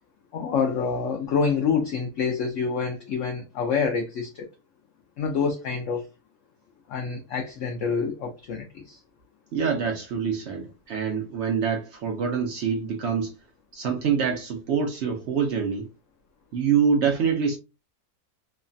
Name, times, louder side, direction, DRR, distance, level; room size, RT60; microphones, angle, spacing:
voice 1, 0.3-4.5 5.2-6.0 6.9-9.0, left 5 dB, 70° left, 0.7 m, -27 dB
voice 2, 9.5-13.3 13.7-15.9 16.5-17.6, right 6 dB, 80° right, 0.6 m, -25 dB
3.1 x 2.1 x 2.5 m
omnidirectional pair, 1.8 m